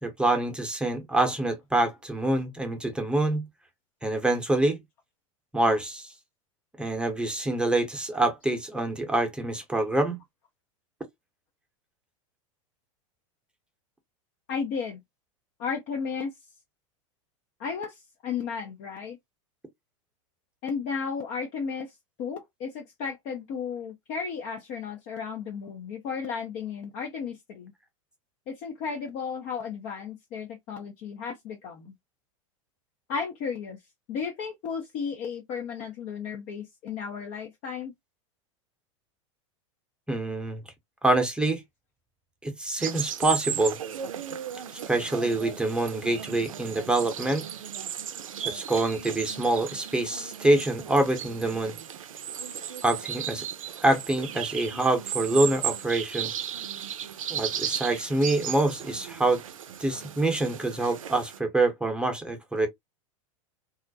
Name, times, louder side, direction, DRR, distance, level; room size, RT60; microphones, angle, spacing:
voice 1, 0.0-3.5 4.0-4.8 5.5-6.1 6.8-10.2 40.1-40.6 41.0-41.6 42.4-43.8 44.7-47.4 48.4-51.7 52.8-53.4 53.8-56.3 57.3-59.4 59.8-62.7, right 2 dB, 5° right, 0.7 m, -26 dB
voice 2, 14.5-15.0 15.6-16.3 17.6-19.2 20.6-27.7 28.5-31.9 33.1-33.8 34.1-37.9, left 6 dB, 50° left, 0.5 m, -34 dB
sound 1, 42.8-61.4, right 9 dB, 85° right, 0.4 m, -35 dB
2.4 x 2.1 x 2.6 m
hypercardioid pair, 95°, 17 cm